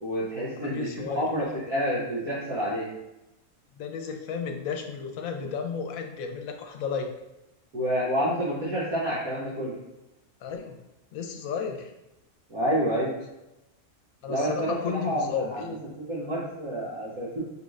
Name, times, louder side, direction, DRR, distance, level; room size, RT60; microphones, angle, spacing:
voice 1, 0.0-2.9 7.7-9.8 12.5-13.1 14.3-14.8 15.0-17.4, equal, 90° right, -9 dB, 1.6 m, -28 dB
voice 2, 0.6-1.3 3.7-7.1 10.4-10.8 11.1-11.9 14.2-15.8, left 6 dB, 80° left, 4 dB, 1.0 m, -33 dB
5.2 x 3.2 x 2.4 m, 0.94 s
omnidirectional pair, 1.5 m